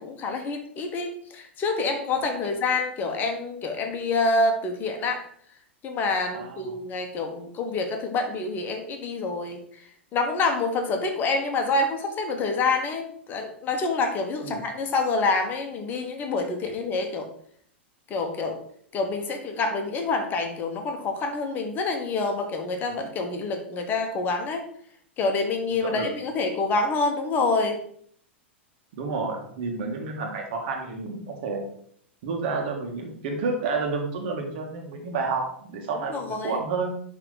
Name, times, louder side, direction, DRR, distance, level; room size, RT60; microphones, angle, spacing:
voice 1, 0.0-5.2 5.8-9.8 10.1-17.3 18.1-18.6 18.9-24.6 25.2-27.8 35.9-36.6, left 3 dB, 30° left, 5 dB, 1.2 m, -27 dB
voice 2, 6.3-6.7 14.4-14.7 25.7-26.1 29.0-31.6 32.2-37.0, right 4 dB, 50° right, 1 dB, 1.7 m, -30 dB
10.5 x 3.6 x 4.0 m, 0.62 s
figure-of-eight pair, 95°, 7 cm